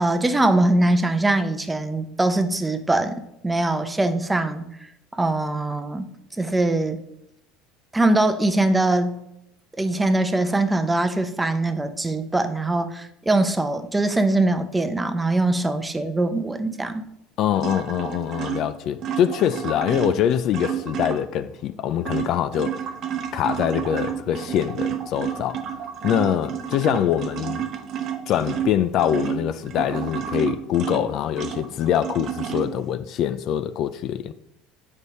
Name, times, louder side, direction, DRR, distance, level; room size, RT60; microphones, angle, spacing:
voice 1, 0.0-6.1 6.4-7.0 7.9-9.2 9.8-17.1, right 2 dB, 10° right, 0.7 m, -22 dB
voice 2, 17.4-22.8 23.3-25.6 26.0-27.6 28.3-34.3, left 10 dB, 50° left, 0.4 m, -24 dB
sound 1, 17.6-21.5 21.8-32.9, right 9 dB, 45° right, 0.9 m, -31 dB
8.1 x 5.3 x 4.2 m
supercardioid pair, 130°, 0 cm